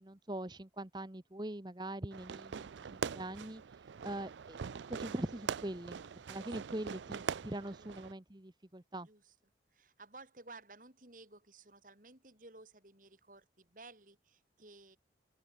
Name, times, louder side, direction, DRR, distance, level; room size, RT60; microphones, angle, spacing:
voice 1, 0.0-4.6 4.9-6.0 6.3-9.1, right 1 dB, 25° right, 1.1 m, -42 dB
Fireworks, 2.1-8.1, right 6 dB, 85° right, 0.5 m, -42 dB
voice 2, 6.2-6.6 7.1-7.2 7.7-7.9 9.0-9.3 9.7-15.0, right 3 dB, 45° right, 3.5 m, -56 dB
open air
head